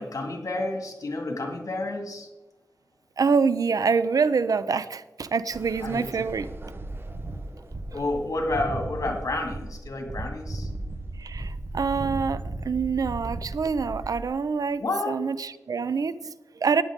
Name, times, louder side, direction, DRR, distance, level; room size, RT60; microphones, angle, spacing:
voice 1, 0.0-2.3 5.8-6.1 7.9-10.7 14.8-15.2, left 2 dB, 70° left, 3 dB, 2.1 m, -30 dB
voice 2, 3.2-6.5 7.9-8.0 11.2-16.8, right 5 dB, 80° right, 15 dB, 0.6 m, -26 dB
sound 1, 5.5-14.3, right 2 dB, 40° right, 1.0 m, -36 dB
14.5 x 9.5 x 3.7 m, 1.1 s
cardioid pair, 55°, 6 cm